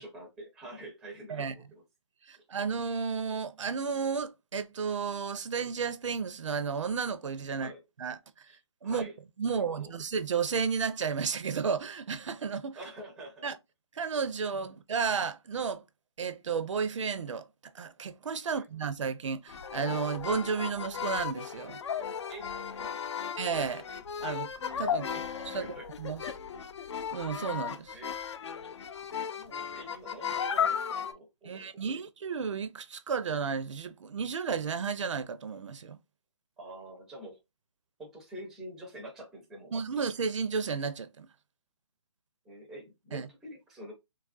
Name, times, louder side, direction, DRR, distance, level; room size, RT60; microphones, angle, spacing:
voice 1, 0.0-1.8 7.5-7.8 8.5-8.6 8.8-9.2 9.4-9.9 12.8-13.5 18.5-18.7 22.3-23.3 24.9-25.9 27.9-28.2 29.3-32.0 36.6-37.4 38.0-40.0 42.4-43.9, right 1 dB, 5° right, 0.4 m, -47 dB
voice 2, 2.3-7.7 8.0-8.5 8.8-9.0 9.4-12.8 13.4-13.6 13.9-15.8 16.2-17.5 17.7-21.8 23.4-23.8 24.2-24.5 24.8-25.1 25.4-25.7 26.0-26.2 27.1-28.0 31.4-36.0 39.7-41.3 43.1-43.3, right 5 dB, 80° right, 0.5 m, -32 dB
sound 1, 19.5-31.1, left 7 dB, 65° left, 0.4 m, -35 dB
3.1 x 2.4 x 2.4 m
hypercardioid pair, 160°, 15 cm